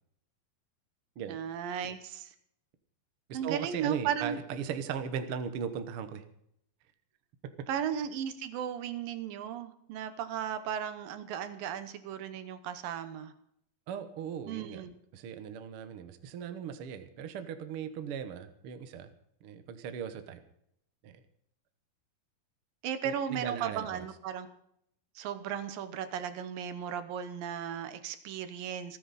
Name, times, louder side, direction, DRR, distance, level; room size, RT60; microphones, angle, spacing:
voice 1, 1.3-2.3 3.3-4.4 7.7-13.3 14.5-14.9 22.8-24.5 25.2-29.0, right 8 dB, 70° right, 10 dB, 2.7 m, -35 dB
voice 2, 3.3-6.2 13.9-14.8 15.1-19.1 19.4-20.4 21.0-21.2 23.0-24.0, right 7 dB, 85° right, 9 dB, 1.2 m, -38 dB
27.5 x 10.0 x 4.2 m, 0.73 s
omnidirectional pair, 4.4 m